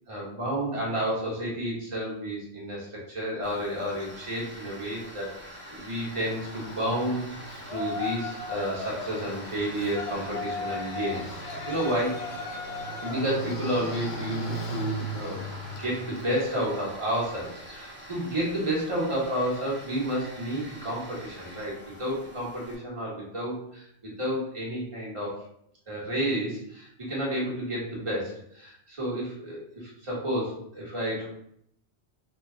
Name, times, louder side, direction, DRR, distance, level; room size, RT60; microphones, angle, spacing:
voice 1, 0.1-5.3 5.7-7.3 7.7-12.2 13.0-15.4 15.8-25.4 25.9-31.3, equal, 30° right, -5 dB, 1.3 m, -31 dB
Tools, 3.4-22.7, equal, 10° right, 0.8 m, -44 dB
Yell, 6.1-16.3, left 1 dB, 75° left, 0.8 m, -37 dB
3.5 x 2.3 x 3.8 m, 0.70 s
omnidirectional pair, 1.1 m